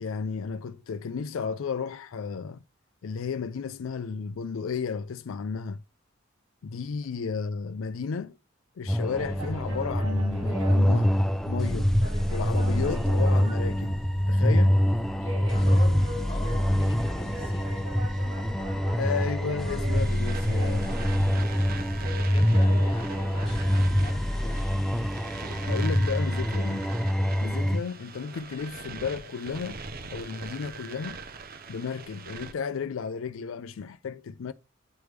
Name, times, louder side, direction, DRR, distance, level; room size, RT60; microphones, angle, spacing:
voice 1, 0.0-2.6 3.0-5.8 6.6-8.4 8.8-11.2 11.5-11.9 12.3-14.0 14.3-14.8 18.9-20.9 25.6-26.8 27.4-31.2 31.7-34.5, left 5 dB, 80° left, 0.4 m, -33 dB
sound 1, 8.9-27.8, equal, ahead, 0.5 m, -25 dB
sound 2, 9.1-23.8, right 1 dB, 80° right, 4.0 m, -41 dB
voice 2, 15.4-17.7 22.1-24.7, left 2 dB, 25° left, 1.8 m, -42 dB
sound 3, 20.0-32.5, right 4 dB, 45° right, 0.7 m, -42 dB
9.2 x 3.4 x 3.2 m
head